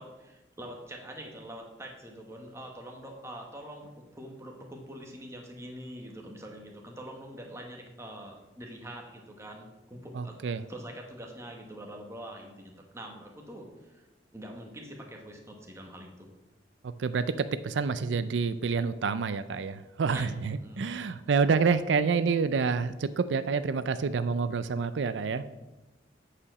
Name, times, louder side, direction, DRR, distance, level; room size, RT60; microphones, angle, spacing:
voice 1, 0.0-14.1 14.3-16.3 20.1-20.3 20.6-20.8, right 1 dB, 15° right, 1 dB, 1.4 m, -44 dB
voice 2, 10.1-10.6 16.8-25.4, right 5 dB, 90° right, 13 dB, 0.4 m, -28 dB
8.5 x 5.0 x 6.7 m, 1.0 s
head